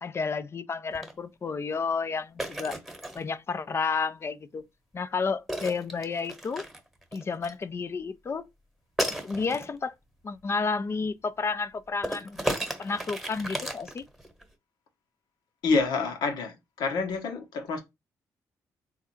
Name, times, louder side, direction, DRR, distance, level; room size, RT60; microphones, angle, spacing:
voice 1, 0.0-2.8 3.1-4.6 4.9-6.6 7.1-8.5 9.2-9.9 10.2-12.4 12.8-14.1, left 4 dB, 40° left, 0.4 m, -31 dB
sound 1, 0.9-1.1 2.4-3.2 5.5-7.6 9.0-9.7 12.0-14.4, right 1 dB, ahead, 1.1 m, -34 dB
voice 2, 15.6-17.8, left 4 dB, 80° left, 1.0 m, -28 dB
3.6 x 2.5 x 4.3 m
cardioid pair, 75°, 7 cm